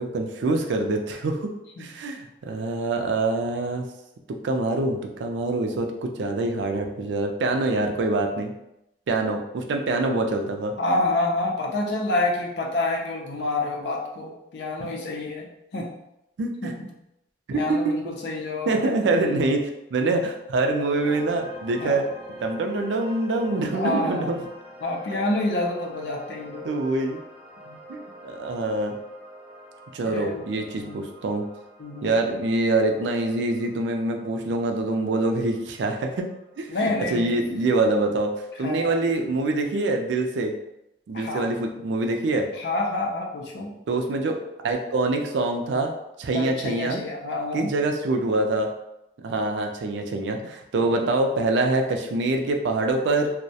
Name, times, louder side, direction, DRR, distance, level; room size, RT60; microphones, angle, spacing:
voice 1, 0.0-1.5 1.8-3.9 4.4-8.5 9.1-10.7 14.8-14.9 16.4-16.8 17.5-17.9 18.7-22.0 22.4-24.4 26.6-27.2 27.9-28.9 29.9-31.5 32.0-36.3 36.6-38.3 38.6-40.5 41.1-42.5 43.9-45.9 46.2-47.0 47.5-48.7 49.2-53.3, right 2 dB, 85° right, 4 dB, 0.4 m, -25 dB
voice 2, 10.8-15.5 15.7-15.9 16.6-16.9 17.5-18.9 21.8-22.0 23.7-24.3 24.8-26.7 27.7-27.8 30.0-30.4 30.7-31.0 31.8-32.1 36.7-37.4 38.6-38.9 41.1-41.4 42.5-43.7 46.3-47.7 50.8-50.9, left 2 dB, 70° left, 0 dB, 0.5 m, -28 dB
sound 1, 20.9-37.9, right 1 dB, 5° right, 0.5 m, -45 dB
2.3 x 2.0 x 2.7 m, 0.85 s
head